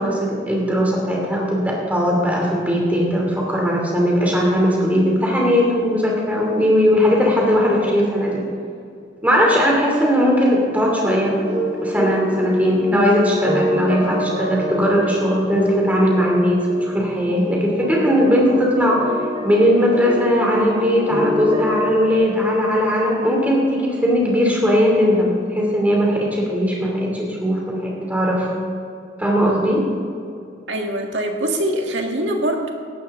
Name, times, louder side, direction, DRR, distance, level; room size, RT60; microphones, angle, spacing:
voice 1, 0.0-8.4 9.2-11.4 11.8-19.1 19.4-28.5 29.2-29.8, equal, 10° right, -2 dB, 2.8 m, -18 dB
sound 1, 11.0-21.9, left 1 dB, 30° right, 2.1 m, -26 dB
voice 2, 30.7-32.7, right 1 dB, 80° right, 2 dB, 1.8 m, -23 dB
17.0 x 12.5 x 3.7 m, 2.5 s
head